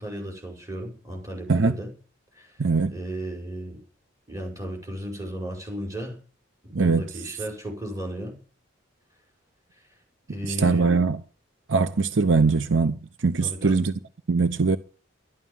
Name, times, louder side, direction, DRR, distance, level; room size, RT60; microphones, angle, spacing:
voice 1, 0.0-1.9 2.3-2.6 2.9-3.8 4.3-6.2 6.6-8.3 10.3-10.9 13.4-13.8, equal, 15° right, 5.3 m, -34 dB
voice 2, 2.6-2.9 6.7-7.1 10.5-11.2 11.7-13.0 13.2-13.9 14.3-14.8, right 4 dB, 65° right, 0.7 m, -21 dB
12.5 x 11.0 x 7.2 m
head